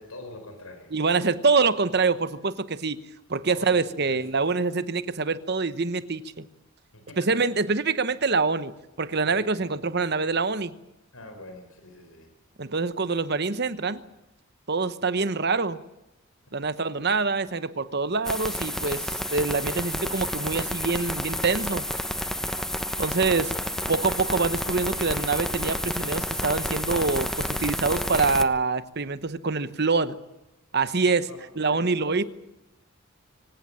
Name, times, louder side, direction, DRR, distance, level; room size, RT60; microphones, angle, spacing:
voice 1, 0.0-0.9 3.5-4.6 6.9-7.4 9.3-9.7 11.1-12.3 31.3-32.3, left 2 dB, 80° left, 6 dB, 5.1 m, -44 dB
voice 2, 0.9-3.0 3.3-6.4 7.2-8.7 9.0-10.7 12.6-14.0 14.7-15.8 16.5-21.8 23.0-23.5 23.9-30.1 30.7-31.3 31.6-32.2, right 4 dB, 50° right, 13 dB, 1.1 m, -25 dB
sound 1, 18.2-28.4, left 1 dB, ahead, 0.9 m, -30 dB
24.5 x 17.0 x 9.1 m, 0.92 s
head